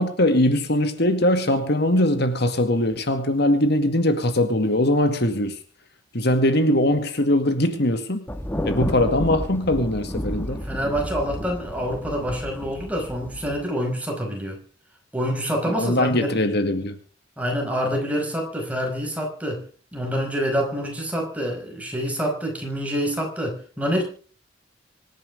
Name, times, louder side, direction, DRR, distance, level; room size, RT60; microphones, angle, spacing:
voice 1, 0.0-5.6 6.1-8.2 8.6-10.6 15.7-17.0, left 1 dB, 55° left, 2.1 m, -21 dB
Thunder, 8.3-13.6, equal, 10° left, 1.5 m, -31 dB
voice 2, 10.7-14.6 15.1-16.4 17.4-19.6 19.9-24.0, equal, 5° right, 5.4 m, -26 dB
25.5 x 10.5 x 3.5 m
head